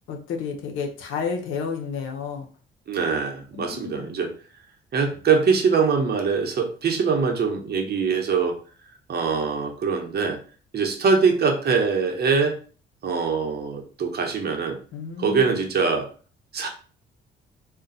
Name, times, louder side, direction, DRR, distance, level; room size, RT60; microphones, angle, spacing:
voice 1, 0.1-2.5 3.5-4.2 14.9-15.6, left 6 dB, 85° left, 3 dB, 0.8 m, -31 dB
voice 2, 2.9-4.3 4.9-8.6 9.1-10.4 10.7-12.6 13.0-14.8 15.2-16.1 16.5-16.7, right 5 dB, 55° right, 3 dB, 0.8 m, -23 dB
2.5 x 2.2 x 3.9 m, 0.39 s
cardioid pair, 90°, 20 cm